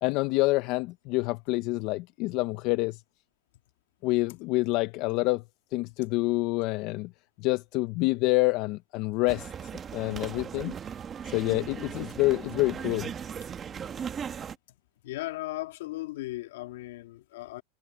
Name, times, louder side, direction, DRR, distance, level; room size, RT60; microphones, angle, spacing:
voice 1, 0.0-3.0 4.0-5.4 5.7-7.1 7.4-9.5 9.9-10.7 11.2-13.1, left 21 dB, 40° left, 0.5 m, -27 dB
sound 1, 9.3-14.6, right 7 dB, 20° right, 1.1 m, -38 dB
voice 2, 15.0-17.6, left 17 dB, 70° left, 1.9 m, -37 dB
supercardioid pair, 160°, 0 cm